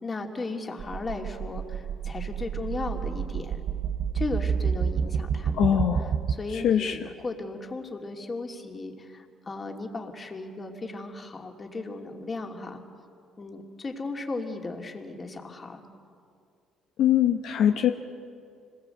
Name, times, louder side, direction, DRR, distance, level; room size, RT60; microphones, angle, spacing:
voice 1, 0.0-3.6 4.1-12.8 13.4-15.8, left 3 dB, 30° left, 3 dB, 2.8 m, -36 dB
sound 1, 0.8-6.4, right 7 dB, 50° right, 0.8 m, -29 dB
voice 2, 5.5-6.1 6.5-7.0 17.0-17.9, left 10 dB, 70° left, 5 dB, 1.1 m, -22 dB
26.0 x 20.5 x 8.0 m, 2.4 s
cardioid pair, 95°, 0 cm